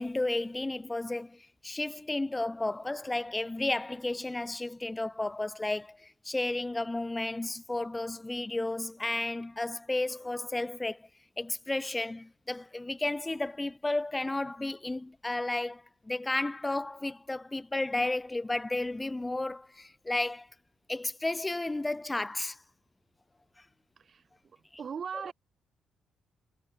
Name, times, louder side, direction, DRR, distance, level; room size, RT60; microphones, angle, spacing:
voice 1, 0.0-11.1 11.4-20.5 20.9-22.6 24.7-24.8 25.1-25.3, left 2 dB, 15° left, 0.6 m, -33 dB
voice 2, 24.8-25.3, right 6 dB, 50° right, 0.7 m, -37 dB
cardioid pair, 90°, 0 cm